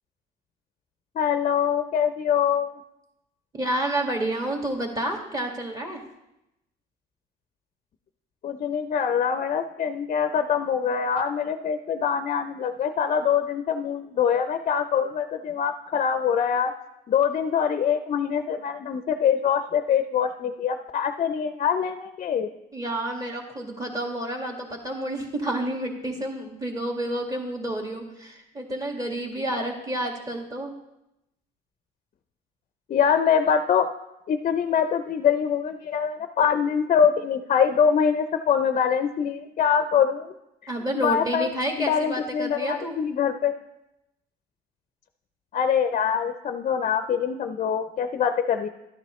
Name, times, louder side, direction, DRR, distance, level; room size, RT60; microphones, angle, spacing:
voice 1, 1.2-2.7 8.4-16.7 17.1-22.5 32.9-33.9 34.3-40.3 40.9-41.5 41.8-43.5 45.5-48.7, left 7 dB, 45° left, 8 dB, 0.5 m, -24 dB
voice 2, 3.5-6.0 22.7-30.7 40.7-43.0, right 1 dB, 20° right, 2 dB, 1.8 m, -29 dB
12.5 x 9.5 x 3.1 m, 0.89 s
cardioid pair, 110°, 17 cm